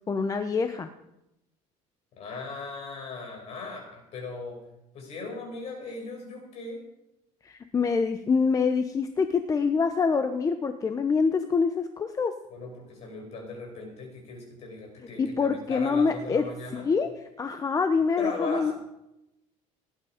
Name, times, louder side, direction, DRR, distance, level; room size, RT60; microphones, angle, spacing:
voice 1, 0.1-0.9 7.4-12.3 15.2-16.4 16.7-17.1 17.4-18.7, left 5 dB, 25° left, 8 dB, 0.8 m, -25 dB
voice 2, 2.1-4.6 4.9-6.8 12.5-16.9 18.2-18.7, left 3 dB, 50° left, 1 dB, 6.5 m, -38 dB
18.0 x 10.5 x 5.1 m, 0.88 s
cardioid pair, 130°, 14 cm